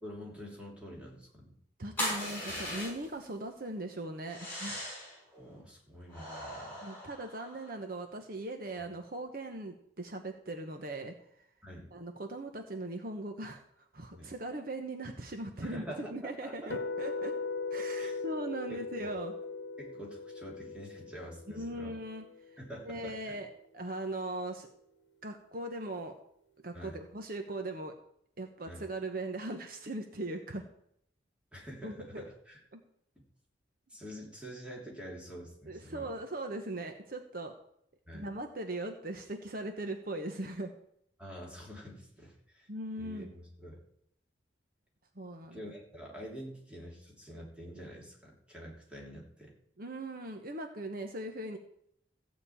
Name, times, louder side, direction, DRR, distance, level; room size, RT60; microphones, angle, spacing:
voice 1, 0.0-1.5 5.3-6.8 11.6-11.9 14.1-14.3 15.6-16.7 18.0-18.1 18.7-19.1 19.8-21.9 22.6-23.4 26.7-27.0 28.7-28.9 31.5-32.6 33.1-33.2 33.9-36.1 38.1-38.3 41.2-42.7 43.0-43.8 45.5-49.5, equal, 5° right, -3 dB, 3.1 m, -46 dB
voice 2, 1.8-4.8 6.8-11.4 11.9-17.3 17.7-19.3 21.5-22.6 22.8-24.7 25.2-26.1 26.6-27.9 28.4-30.6 31.8-32.2 32.7-32.8 35.7-37.5 38.1-40.7 42.7-43.3 45.1-45.6 49.8-51.6, right 1 dB, 55° right, 5 dB, 1.0 m, -39 dB
sound 1, 2.0-3.2 4.3-5.2 6.1-7.8, left 1 dB, 10° left, 6.3 m, -38 dB
sound 2, 16.7-22.8, left 3 dB, 85° left, 1.0 m, -39 dB
15.0 x 5.3 x 8.6 m, 0.72 s
head